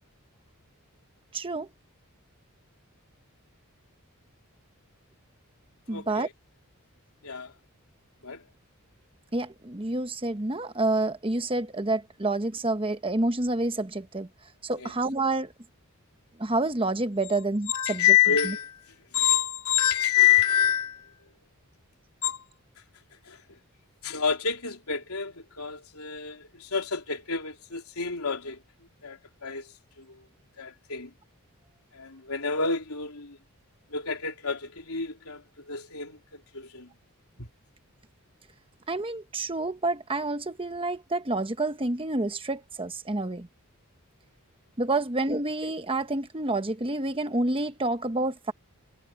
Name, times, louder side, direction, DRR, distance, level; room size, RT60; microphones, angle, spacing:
voice 1, 1.3-1.7 5.9-6.3 9.3-14.3 14.6-15.5 16.4-18.0 18.4-18.5 38.9-43.5 44.8-48.5, right 2 dB, 25° right, 1.1 m, -28 dB
voice 2, 5.9-6.3 7.2-7.5 8.2-8.4 14.8-14.9 17.7-21.2 22.2-22.4 23.3-23.4 24.0-28.6 29.0-30.2 30.6-31.1 31.9-33.4 33.9-36.9 37.4-37.5, left 9 dB, 75° left, 3.8 m, -28 dB
head